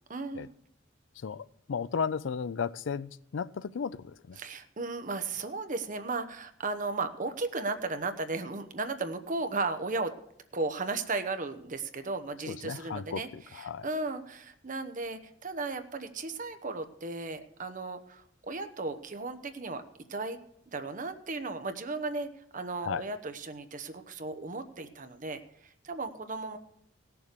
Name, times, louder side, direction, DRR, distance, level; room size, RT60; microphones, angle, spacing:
voice 1, 0.1-0.5 4.4-10.1 10.5-19.8 20.1-20.4 20.7-22.3 22.5-25.4 25.8-26.6, right 3 dB, 45° right, 1.0 m, -35 dB
voice 2, 1.2-4.4 12.5-13.9 22.8-23.0, left 6 dB, 75° left, 0.4 m, -35 dB
17.0 x 7.0 x 6.7 m
head